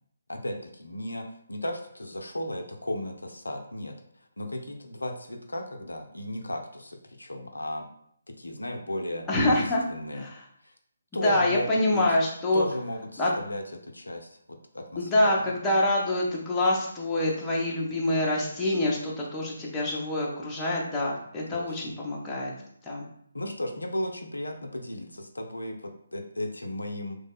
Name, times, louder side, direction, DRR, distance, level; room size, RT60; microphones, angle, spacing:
voice 1, 0.3-4.0 4.4-7.9 8.3-10.3 10.6-10.7 11.1-12.1 12.5-15.6 21.5-21.9 23.3-27.2, left 1 dB, 85° left, 4 dB, 0.5 m, -35 dB
voice 2, 9.3-9.8 10.1-10.4 11.1-12.7 13.2-13.3 15.0-22.5 22.8-23.0, left 1 dB, 10° left, -5 dB, 0.7 m, -26 dB
3.1 x 2.1 x 3.5 m, 0.67 s
figure-of-eight pair, 145°, 0 cm